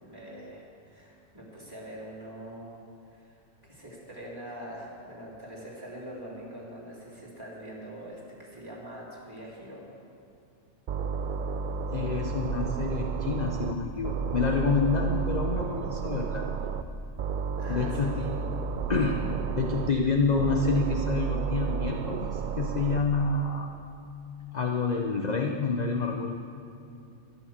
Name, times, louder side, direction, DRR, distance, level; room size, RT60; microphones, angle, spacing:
voice 1, 0.0-2.7 3.1-3.3 3.6-9.9 17.6-18.1, equal, 15° right, -6 dB, 3.3 m, -43 dB
sound 1, 10.9-13.7 14.0-16.8 17.2-19.9 20.4-23.0, right 6 dB, 55° right, 0.5 m, -31 dB
voice 2, 11.9-16.5 17.7-18.4 18.9-19.2 19.5-23.7 24.5-26.3, left 4 dB, 40° left, 2 dB, 0.8 m, -28 dB
12.5 x 11.5 x 7.4 m, 2.5 s
omnidirectional pair, 1.3 m